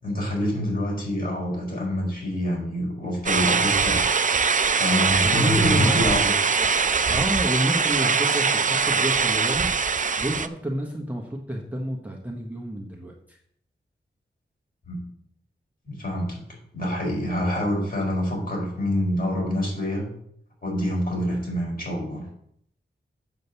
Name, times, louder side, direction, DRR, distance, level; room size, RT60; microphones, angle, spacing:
voice 1, 0.0-4.1 4.6-6.3 14.9-15.0 15.8-16.4 16.7-20.1 20.6-22.2, left 1 dB, 50° left, -2 dB, 4.6 m, -26 dB
sound 1, 3.3-10.5, right 5 dB, 40° right, 0.5 m, -22 dB
voice 2, 5.2-6.0 6.6-6.7 7.1-9.7 10.2-13.4, equal, 10° right, -1 dB, 1.3 m, -29 dB
8.1 x 5.2 x 6.9 m, 0.69 s
wide cardioid pair, 95°, 20 cm